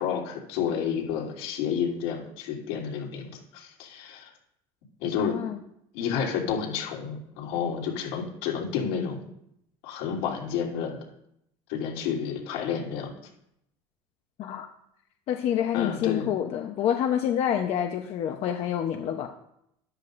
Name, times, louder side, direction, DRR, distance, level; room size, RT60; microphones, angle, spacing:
voice 1, 0.0-4.3 5.0-5.4 5.9-9.3 9.8-11.0 11.7-13.1 15.7-16.3, left 7 dB, 85° left, -2 dB, 3.3 m, -30 dB
voice 2, 5.2-5.6 14.4-14.7 15.3-19.3, left 10 dB, 55° left, 4 dB, 0.9 m, -27 dB
13.5 x 11.0 x 2.6 m, 0.76 s
cardioid pair, 120°, 12 cm